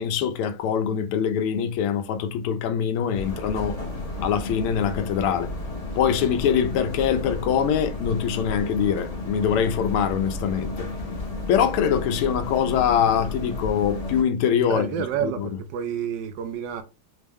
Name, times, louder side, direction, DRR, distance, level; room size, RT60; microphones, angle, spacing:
voice 1, 0.0-3.8 4.2-5.5 6.0-10.9 11.5-14.9 15.2-15.5, left 8 dB, 85° left, 1.5 m, -23 dB
sound 1, 3.1-14.2, left 2 dB, 50° left, 0.4 m, -32 dB
voice 2, 14.7-16.8, right 9 dB, 75° right, 1.0 m, -29 dB
5.0 x 2.1 x 3.4 m
omnidirectional pair, 2.4 m